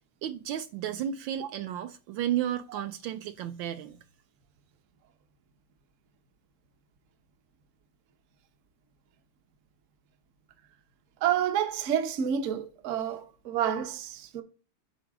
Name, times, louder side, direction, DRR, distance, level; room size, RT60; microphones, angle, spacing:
voice 1, 0.2-4.0, right 10 dB, 75° right, 1.2 m, -33 dB
voice 2, 11.2-14.4, right 9 dB, 55° right, 0.9 m, -29 dB
9.9 x 3.9 x 3.5 m
omnidirectional pair, 2.3 m